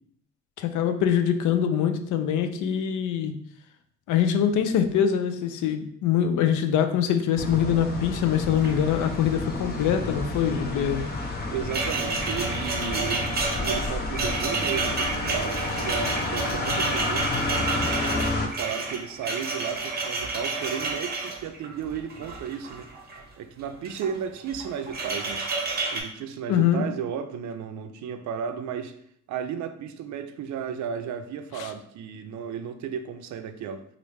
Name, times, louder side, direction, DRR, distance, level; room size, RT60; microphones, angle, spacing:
voice 1, 0.6-3.3 4.1-11.1 26.5-26.8 31.6-31.7, left 8 dB, 80° left, 8 dB, 0.5 m, -24 dB
sound 1, 7.4-18.5, left 2 dB, 30° left, 0.6 m, -30 dB
sound 2, 8.2-8.3 8.5-9.3 9.6-9.9 11.0-23.2 23.7-24.2 24.5-26.0, right 3 dB, 30° right, 0.7 m, -30 dB
voice 2, 11.5-17.3 18.1-22.9 23.3-25.4 25.9-29.0 29.3-33.8, right 7 dB, 70° right, 9 dB, 0.4 m, -34 dB
3.1 x 2.5 x 3.2 m, 0.68 s
cardioid pair, 90°, 30 cm